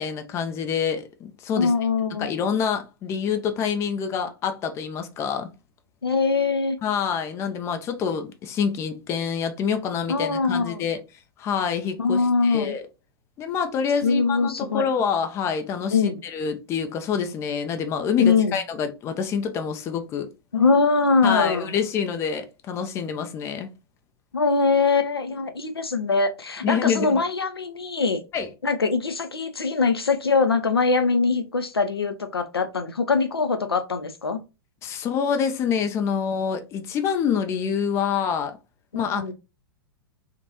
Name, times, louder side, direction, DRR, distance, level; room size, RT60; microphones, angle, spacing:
voice 1, 0.0-1.7 2.2-5.5 6.8-11.0 11.4-12.8 13.4-20.3 21.2-23.7 26.6-27.2 28.3-28.5 34.8-38.6 38.9-39.3, left 7 dB, 20° left, 0.4 m, -26 dB
voice 2, 1.6-2.3 6.0-6.8 10.1-10.8 12.0-12.7 14.0-14.8 15.9-16.2 18.2-18.6 20.5-21.8 24.3-28.2 28.6-34.4 38.9-39.3, left 4 dB, 80° left, 0.5 m, -22 dB
2.9 x 2.1 x 2.8 m
figure-of-eight pair, 100°, 13 cm